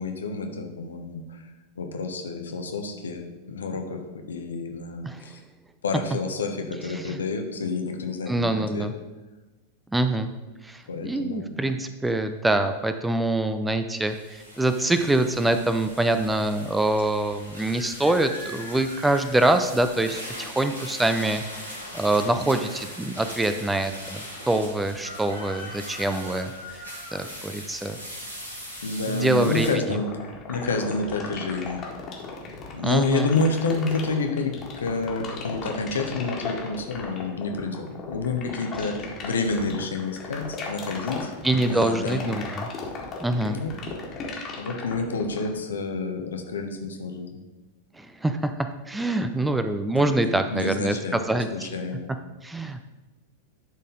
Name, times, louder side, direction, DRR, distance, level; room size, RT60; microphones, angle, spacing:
voice 1, 0.0-1.5 1.8-5.4 5.8-8.9 10.9-11.5 28.8-31.8 32.7-41.3 41.6-42.4 43.4-43.8 44.6-47.4 50.2-51.2 51.5-52.1, left 3 dB, 70° left, 4 dB, 1.0 m, -29 dB
voice 2, 8.3-8.9 9.9-10.3 10.6-26.8 27.1-28.0 29.1-30.0 32.8-33.3 41.4-42.7 43.2-43.6 48.0-51.7 52.4-52.9, right 2 dB, 5° right, 9 dB, 0.5 m, -25 dB
sound 1, 14.0-29.7, equal, 80° right, 2.2 m, -40 dB
sound 2, 29.6-45.5, left 5 dB, 30° left, 1.7 m, -36 dB
11.5 x 4.1 x 3.9 m, 1.1 s
figure-of-eight pair, 90°, 0 cm